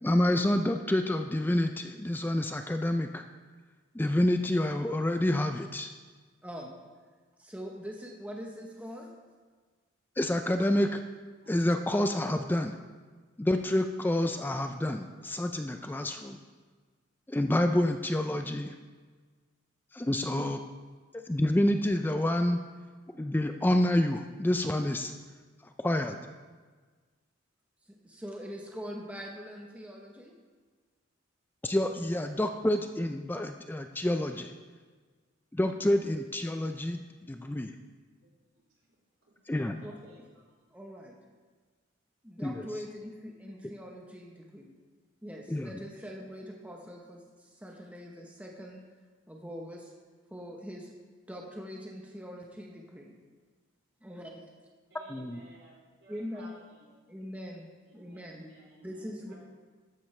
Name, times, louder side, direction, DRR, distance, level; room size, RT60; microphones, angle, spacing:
voice 1, 0.0-3.2 3.9-5.9 10.2-11.0 11.5-12.8 13.4-16.4 17.3-18.8 19.9-20.6 21.1-22.6 23.1-25.1 25.6-26.2 31.6-34.5 35.5-37.8 39.5-39.8 42.4-42.7 45.5-45.7 55.1-55.4, left 1 dB, 10° left, 6 dB, 0.3 m, -28 dB
voice 2, 7.4-9.1 27.9-30.3 39.8-40.0 40.7-41.2 42.2-44.7 45.2-48.8 49.3-49.9 50.3-50.9 51.3-53.1 54.0-54.3 56.1-56.5 57.1-57.7 57.9-58.5 58.8-59.3, equal, 5° right, 0 dB, 0.9 m, -43 dB
voice 3, 39.5-40.4 54.9-56.9 57.9-59.3, right 1 dB, 75° right, -5 dB, 3.9 m, -56 dB
13.0 x 10.0 x 3.2 m, 1.5 s
head